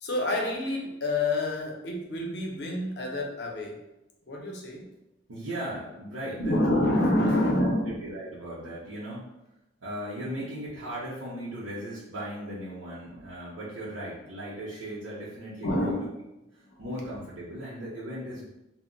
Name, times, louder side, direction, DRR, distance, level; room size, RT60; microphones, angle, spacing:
voice 1, 0.0-3.8 4.3-4.9 6.4-7.9 15.6-16.1 16.6-16.8, left 1 dB, 55° left, 0 dB, 0.5 m, -27 dB
voice 2, 5.3-6.6 7.3-7.5 7.8-9.2 9.8-16.1 16.5-18.5, right 1 dB, 80° right, -9 dB, 0.6 m, -37 dB
2.1 x 2.0 x 3.8 m, 0.93 s
head